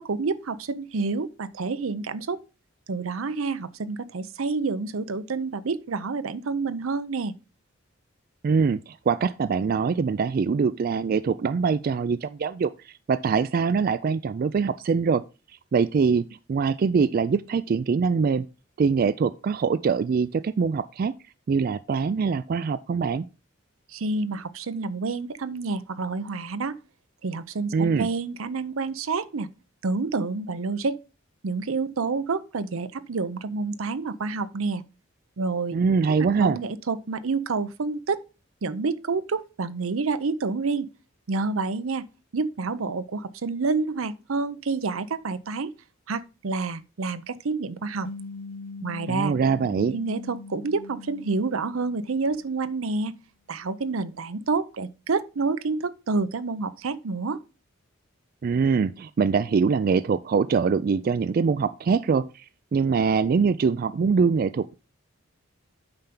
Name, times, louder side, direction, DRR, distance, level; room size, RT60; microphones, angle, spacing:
voice 1, 0.1-2.4 2.9-7.3 23.9-26.8 27.2-29.5 29.8-31.0 31.4-34.8 35.4-35.8 36.2-38.2 38.6-40.9 41.3-42.0 42.3-45.7 46.1-48.1 48.8-49.3 49.9-53.1 53.5-57.4, right 4 dB, 85° right, 0.6 m, -28 dB
voice 2, 8.4-15.2 15.7-18.5 18.8-21.1 21.5-23.2 27.7-28.1 35.7-36.6 49.1-49.9 58.4-62.5 62.7-64.7, right 5 dB, 45° right, 0.3 m, -23 dB
sound 1, 48.0-52.7, left 3 dB, 65° left, 0.5 m, -41 dB
8.8 x 5.7 x 3.7 m
head